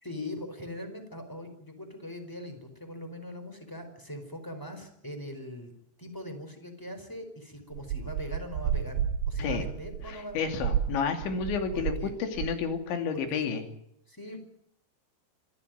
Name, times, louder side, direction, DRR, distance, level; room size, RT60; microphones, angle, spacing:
voice 1, 0.0-5.7 6.0-10.6 11.7-12.1 13.1-13.6 14.1-14.4, left 1 dB, 5° left, 7 dB, 4.0 m, -41 dB
sound 1, 7.7-12.1 12.3-12.7, right 9 dB, 75° right, 3.1 m, -32 dB
voice 2, 10.1-13.6, left 6 dB, 85° left, 6 dB, 4.9 m, -31 dB
26.0 x 15.0 x 9.2 m, 0.73 s
omnidirectional pair, 5.1 m